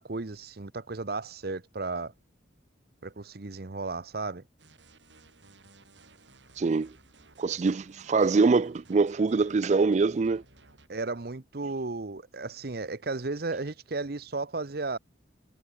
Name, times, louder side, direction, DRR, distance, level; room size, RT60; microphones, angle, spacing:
voice 1, 0.0-2.1 3.0-4.4 10.9-15.0, right 3 dB, 55° right, 0.9 m, -34 dB
sound 1, 4.6-10.9, right 3 dB, 85° right, 5.7 m, -57 dB
voice 2, 6.6-6.9 7.4-10.4, right 4 dB, 40° right, 0.4 m, -24 dB
head